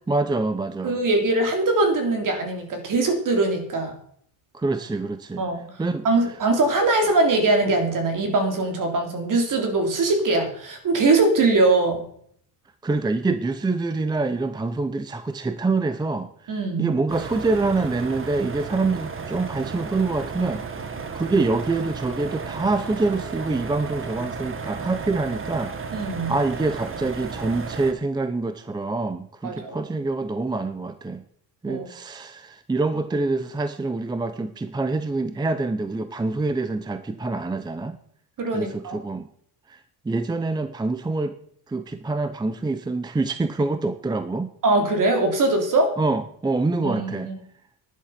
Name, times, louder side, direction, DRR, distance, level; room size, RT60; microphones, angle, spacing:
voice 1, 0.1-0.9 4.5-5.5 5.8-6.0 12.8-20.6 21.1-25.7 26.3-31.2 31.6-38.0 38.5-39.3 39.7-39.8 40.0-41.3 41.7-44.5 46.0-47.3, right 3 dB, 10° right, 11 dB, 0.6 m, -26 dB
voice 2, 0.8-4.0 5.4-5.6 6.0-12.1 16.5-16.9 25.9-26.3 29.4-29.8 31.7-31.9 38.4-39.0 44.6-45.9 46.8-47.4, right 2 dB, 50° right, 5 dB, 3.4 m, -22 dB
sound 1, 17.1-27.9, right 5 dB, 30° right, 1.3 m, -34 dB
11.0 x 10.5 x 5.9 m, 0.64 s
cardioid pair, 150°, 40 cm